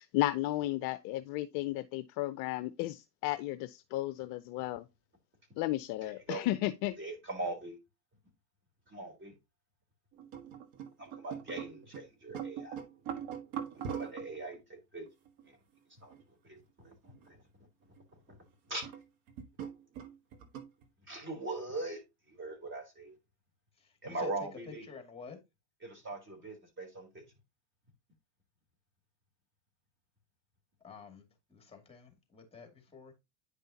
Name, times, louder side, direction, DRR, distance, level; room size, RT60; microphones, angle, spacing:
voice 1, 0.0-4.9 5.6-7.0, left 16 dB, 45° left, 0.6 m, -34 dB
voice 2, 6.0-6.4 7.0-7.8 8.9-9.3 11.0-12.8 13.7-15.1 15.5-15.6 16.0-16.1 16.4-17.4 18.3-18.4 18.7-18.9 21.1-22.0 22.3-23.2 24.0-24.8 25.8-27.2, right 2 dB, 25° right, 3.5 m, -41 dB
sound 1, 10.1-12.0 12.3-14.4 15.1-15.5 16.1-16.2 16.9-17.2 18.0-18.1 18.8-19.0 19.3-20.8, right 8 dB, 55° right, 1.6 m, -41 dB
voice 3, 24.9-25.4 30.8-31.3 31.5-33.2, left 5 dB, 10° left, 2.4 m, -49 dB
9.6 x 5.4 x 2.8 m
hypercardioid pair, 105°, 49 cm